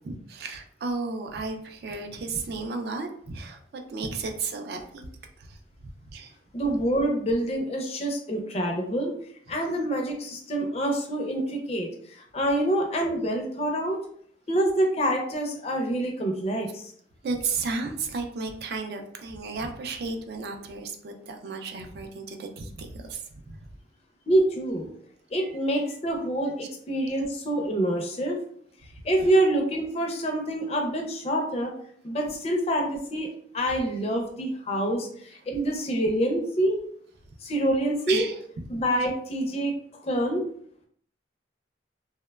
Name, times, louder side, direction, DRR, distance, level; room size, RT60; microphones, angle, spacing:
voice 1, 0.0-5.1 5.4-6.4 9.5-9.9 17.2-23.6 25.4-25.5 27.1-27.2 29.2-29.3 38.1-38.6, right 4 dB, 60° right, 4 dB, 0.3 m, -34 dB
voice 2, 6.5-9.1 9.5-14.0 14.5-16.9 24.3-24.9 25.3-28.4 29.0-31.7 32.0-33.3 33.5-36.8 37.4-38.2 38.7-39.7 40.0-40.4, right 1 dB, 35° left, 2 dB, 0.4 m, -26 dB
2.9 x 2.1 x 2.2 m, 0.62 s
head